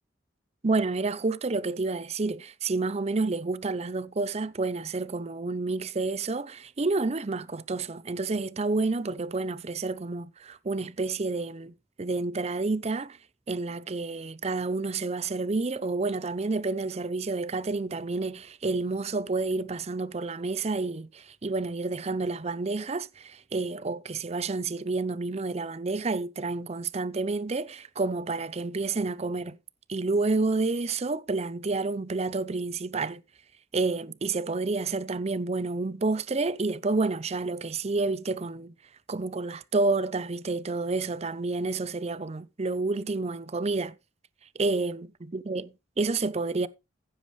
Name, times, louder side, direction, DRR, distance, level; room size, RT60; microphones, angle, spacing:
voice 1, 0.6-13.2 13.5-29.6 29.9-33.2 33.7-38.7 39.1-44.0 44.5-45.1 45.3-45.7 46.0-46.7, right 3 dB, 35° right, 0.6 m, -29 dB
15.5 x 7.2 x 3.2 m
head